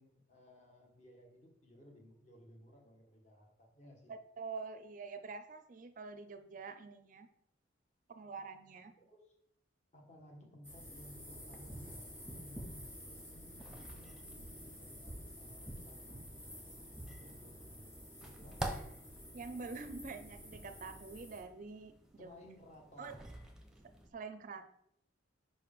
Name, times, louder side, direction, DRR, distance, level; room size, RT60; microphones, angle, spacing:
voice 1, 0.0-4.1 9.0-9.3 9.9-12.6 13.0-16.3 17.0-18.8 22.2-23.3, left 1 dB, 35° left, 1 dB, 1.4 m, -59 dB
voice 2, 4.1-7.3 8.1-8.9 19.3-21.9 22.2-22.4 23.0-23.1 24.1-24.8, right 4 dB, 40° right, 9 dB, 0.4 m, -46 dB
sound 1, 10.6-21.4, equal, 15° left, 2.5 m, -50 dB
sound 2, 11.5-24.1, right 2 dB, 5° right, 0.8 m, -50 dB
5.2 x 4.7 x 5.3 m, 0.73 s
head